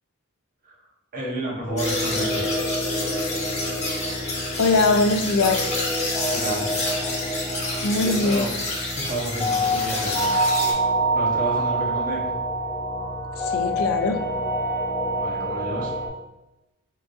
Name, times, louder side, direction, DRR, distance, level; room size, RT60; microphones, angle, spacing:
voice 1, 1.1-2.6 6.3-6.7 8.0-8.5 8.9-10.3 10.7-10.9 11.1-12.2 15.2-15.9, right 1 dB, 40° right, -4 dB, 1.2 m, -31 dB
A Song From Father To Son, 1.7-16.1, right 1 dB, 15° left, 1.0 m, -27 dB
sound 1, 1.8-10.7, left 2 dB, 35° left, 1.3 m, -29 dB
voice 2, 4.6-5.8 7.8-8.5 9.7-9.9 13.4-14.2, left 3 dB, 85° left, 7 dB, 0.5 m, -22 dB
4.6 x 3.9 x 2.6 m, 0.97 s
head